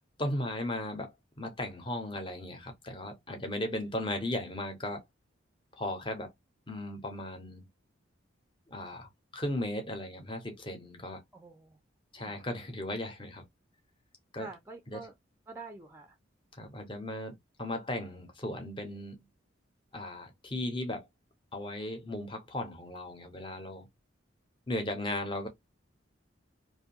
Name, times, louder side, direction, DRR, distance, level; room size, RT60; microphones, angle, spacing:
voice 1, 0.2-5.0 5.8-6.3 6.7-7.7 8.7-11.2 12.1-13.4 14.3-14.5 14.9-15.0 16.5-19.2 19.9-21.1 21.5-23.9 24.7-25.5, left 1 dB, 25° left, 0.7 m, -36 dB
voice 2, 11.3-11.8 12.2-12.5 14.4-15.1 15.5-16.2, right 3 dB, 10° right, 0.4 m, -47 dB
2.5 x 2.3 x 2.7 m
head